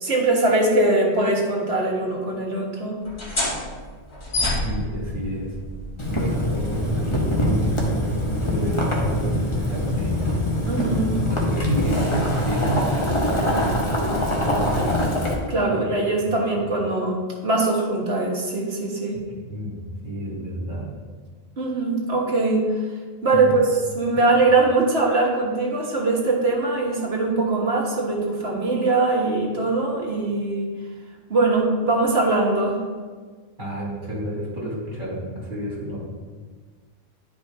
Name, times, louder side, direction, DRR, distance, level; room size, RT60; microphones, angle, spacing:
voice 1, 0.0-3.0 10.7-11.1 15.5-19.2 21.6-22.7 23.2-30.7 31.3-32.8, right 2 dB, 70° right, -2 dB, 1.8 m, -22 dB
sound 1, 3.0-10.3, left 1 dB, 65° left, 2.3 m, -32 dB
voice 2, 4.5-5.6 6.1-8.1 8.4-10.3 11.0-15.0 15.6-16.6 19.5-20.9 23.3-23.6 24.1-24.2 33.6-36.0, right 1 dB, 50° right, -6 dB, 2.8 m, -30 dB
Boiling, 6.0-15.3, left 1 dB, 25° left, 1.3 m, -23 dB
11.0 x 5.1 x 3.6 m, 1.5 s
omnidirectional pair, 1.1 m